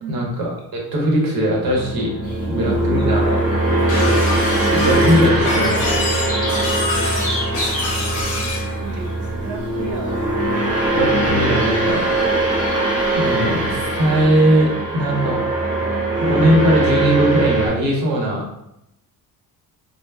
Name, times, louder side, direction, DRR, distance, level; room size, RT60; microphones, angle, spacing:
voice 1, 0.1-2.1 2.5-3.4 4.7-6.0 10.9-12.3 13.1-15.4 16.2-18.4, right 1 dB, 65° right, -2 dB, 0.9 m, -20 dB
sound 1, 1.6-17.7, right 1 dB, 20° right, 0.8 m, -21 dB
sound 2, 2.2-14.2, left 1 dB, 20° left, 1.0 m, -34 dB
voice 2, 2.5-2.9 6.5-7.4 7.7-10.6, right 5 dB, 45° right, 2 dB, 0.4 m, -36 dB
Shatter, 3.9-8.7, left 3 dB, 50° left, 0.7 m, -26 dB
2.1 x 2.0 x 3.3 m, 0.83 s
cardioid pair, 180°, 38 cm